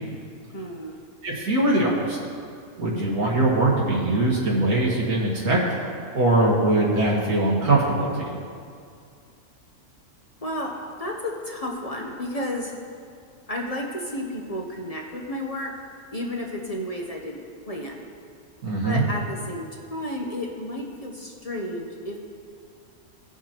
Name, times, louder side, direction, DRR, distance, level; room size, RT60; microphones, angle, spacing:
voice 1, 0.5-1.0 10.4-12.7 13.5-15.7 16.1-17.4 17.7-18.0 18.8-22.2, left 1 dB, 35° left, -1 dB, 0.7 m, -32 dB
voice 2, 1.2-2.2 2.8-5.6 6.1-8.4 18.6-19.0, right 2 dB, 80° right, -5 dB, 2.1 m, -21 dB
16.5 x 5.9 x 2.9 m, 2.3 s
omnidirectional pair, 1.5 m